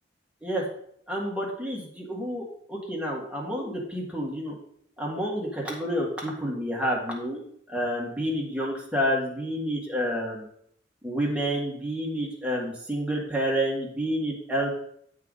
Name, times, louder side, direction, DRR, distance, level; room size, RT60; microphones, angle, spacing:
voice 1, 1.1-2.4 2.7-4.6 5.0-7.4 7.7-10.5 11.0-14.7, equal, 5° right, -4 dB, 1.7 m, -29 dB
8.1 x 3.8 x 5.3 m, 0.66 s
head